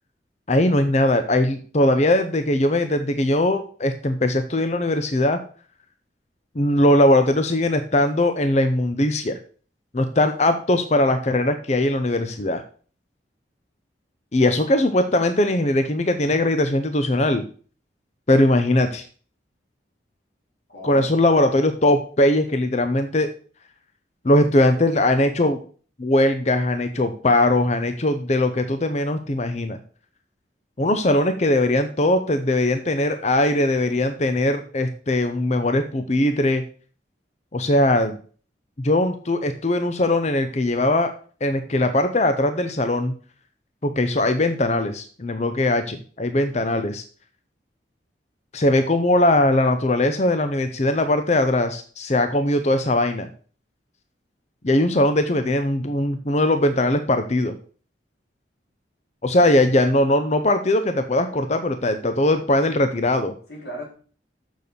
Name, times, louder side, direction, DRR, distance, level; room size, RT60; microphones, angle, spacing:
voice 1, 0.5-5.4 6.6-9.4 9.9-12.6 14.3-17.4 18.3-19.0 20.8-23.3 24.2-25.6 26.0-29.8 30.8-36.6 37.5-38.2 38.8-41.1 41.4-43.1 43.8-47.0 48.5-53.3 54.6-57.5 59.2-63.3, left 1 dB, 40° left, 8 dB, 0.7 m, -20 dB
voice 2, 20.7-21.1 63.5-63.9, equal, 65° left, -1 dB, 3.8 m, -37 dB
6.8 x 6.5 x 6.8 m, 0.42 s
head